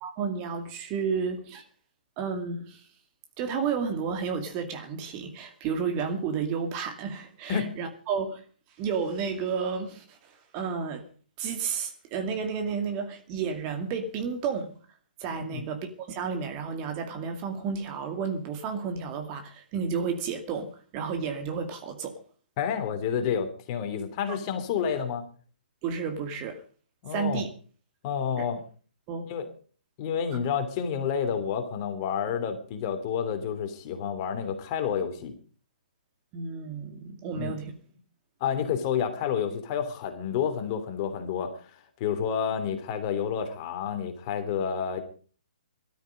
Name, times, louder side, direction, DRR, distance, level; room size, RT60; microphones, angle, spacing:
voice 1, 0.0-1.6 2.2-2.8 3.4-8.4 8.8-11.1 11.4-14.7 15.2-22.1 25.8-26.6 27.1-27.5 29.1-29.3 36.3-37.7, right 6 dB, 25° right, 2.3 m, -32 dB
voice 2, 15.3-15.6 22.6-25.2 27.0-27.4 28.0-28.6 29.3-29.5 30.0-35.3 37.3-37.5 38.4-41.5 42.0-45.0, left 7 dB, 30° left, 2.9 m, -29 dB
18.5 x 13.0 x 5.3 m
figure-of-eight pair, 125°, 5 cm